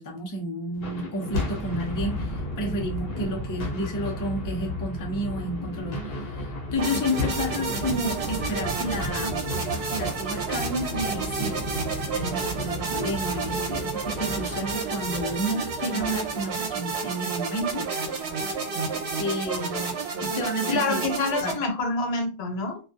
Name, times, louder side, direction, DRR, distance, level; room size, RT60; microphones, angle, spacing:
voice 1, 0.0-9.4 9.9-17.9 19.2-21.1 21.4-21.6, equal, 25° left, 0 dB, 0.5 m, -31 dB
sound 1, 0.7-17.1, left 1 dB, 65° left, 0.9 m, -34 dB
sound 2, 6.7-21.5, right 4 dB, 85° right, 0.9 m, -30 dB
voice 2, 20.7-22.8, left 3 dB, 85° left, 2 dB, 1.0 m, -27 dB
2.3 x 2.3 x 2.6 m, 0.34 s
omnidirectional pair, 1.1 m